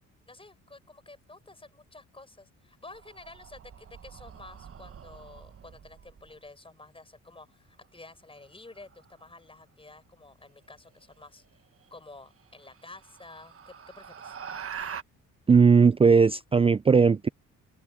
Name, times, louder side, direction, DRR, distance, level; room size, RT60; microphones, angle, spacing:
voice 1, 0.3-11.4 11.9-14.4, left 2 dB, 20° left, 6.3 m, -50 dB
sound 1, 2.8-6.3 8.7-9.1 11.2-11.3 11.8-11.9 12.4-15.0, right 7 dB, 45° right, 1.5 m, -44 dB
voice 2, 15.5-17.3, right 5 dB, 20° right, 0.4 m, -18 dB
open air
cardioid pair, 90°, 30 cm